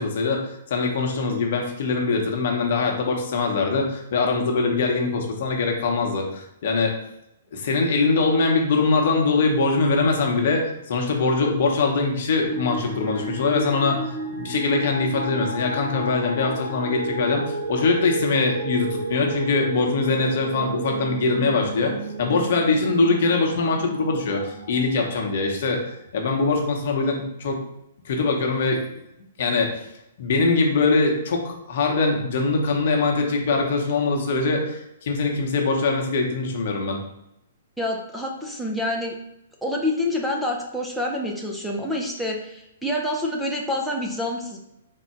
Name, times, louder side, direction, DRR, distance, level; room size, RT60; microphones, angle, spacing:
voice 1, 0.0-7.0 7.5-21.9 22.2-25.8 26.1-27.6 28.0-28.8 29.4-29.8 30.2-37.0, left 3 dB, 55° left, 1 dB, 0.9 m, -22 dB
sound 1, 12.4-25.5, right 2 dB, 70° right, 1.0 m, -32 dB
voice 2, 37.8-39.1 39.6-44.6, left 1 dB, ahead, -1 dB, 0.5 m, -27 dB
3.7 x 2.1 x 4.4 m, 0.84 s
hypercardioid pair, 125°, 0 cm